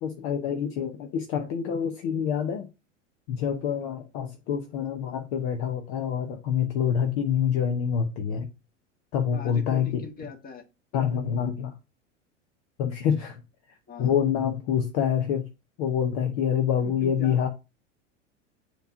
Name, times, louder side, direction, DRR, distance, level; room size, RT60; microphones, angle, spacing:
voice 1, 0.0-2.7 3.3-8.5 9.1-10.0 10.9-11.7 12.8-13.4 14.0-15.4 15.8-17.5, left 8 dB, 45° left, 0.9 m, -26 dB
voice 2, 9.3-10.6 13.9-14.1 16.8-17.5, left 4 dB, 25° left, 1.5 m, -40 dB
6.8 x 3.1 x 4.8 m
figure-of-eight pair, 90°, 38 cm